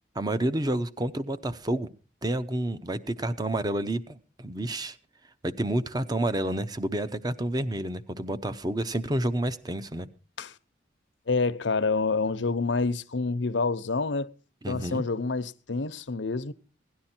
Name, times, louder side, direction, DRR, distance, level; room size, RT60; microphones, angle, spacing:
voice 1, 0.1-1.9 2.2-5.0 5.4-10.1 14.6-15.0, right 1 dB, 20° right, 0.7 m, -29 dB
voice 2, 11.3-14.3 14.7-16.5, left 4 dB, 90° left, 0.8 m, -27 dB
17.0 x 11.0 x 4.4 m
head